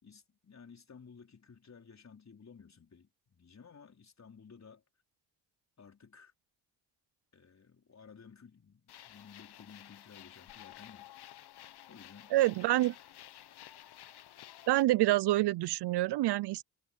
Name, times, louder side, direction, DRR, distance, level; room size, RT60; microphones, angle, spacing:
voice 1, 0.0-4.8 5.8-6.3 7.3-11.1 11.9-12.3, left 6 dB, 40° left, 4.5 m, -55 dB
sound 1, 8.9-14.8, left 12 dB, 65° left, 1.1 m, -53 dB
voice 2, 12.3-12.9 14.7-16.6, right 16 dB, 70° right, 0.6 m, -27 dB
supercardioid pair, 70°, 42 cm